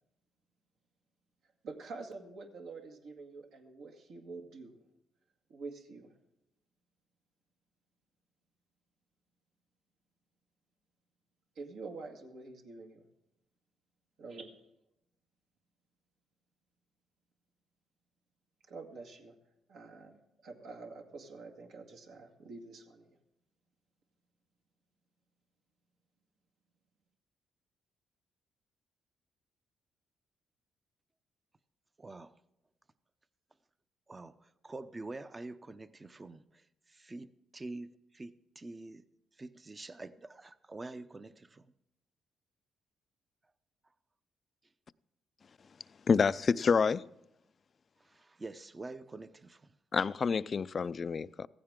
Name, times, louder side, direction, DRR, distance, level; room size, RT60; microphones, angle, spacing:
voice 1, 1.6-4.8 5.5-6.1 11.6-13.0 14.2-14.5 18.7-19.3 19.7-20.2 20.4-23.1, right 3 dB, 80° right, 2.0 m, -47 dB
voice 2, 32.0-32.3 34.1-37.3 37.5-39.0 39.4-41.7 48.0-49.7, right 2 dB, 25° right, 0.7 m, -46 dB
voice 3, 46.1-47.1 49.9-51.5, left 5 dB, 40° left, 0.4 m, -28 dB
15.5 x 15.0 x 3.7 m
cardioid pair, 90°, 0 cm